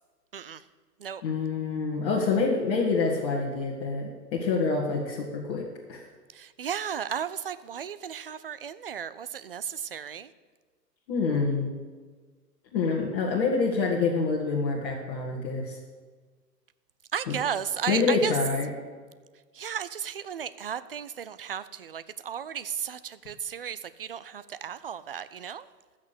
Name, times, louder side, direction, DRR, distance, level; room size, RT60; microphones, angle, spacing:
voice 1, 1.2-6.0 11.1-11.7 12.7-15.8 17.3-17.4 17.9-18.7, left 4 dB, 35° left, -3 dB, 2.0 m, -27 dB
voice 2, 6.3-10.3 17.1-18.3 19.5-25.7, right 8 dB, 35° right, 14 dB, 0.5 m, -34 dB
14.0 x 6.5 x 8.2 m, 1.4 s
figure-of-eight pair, 120°, 50 cm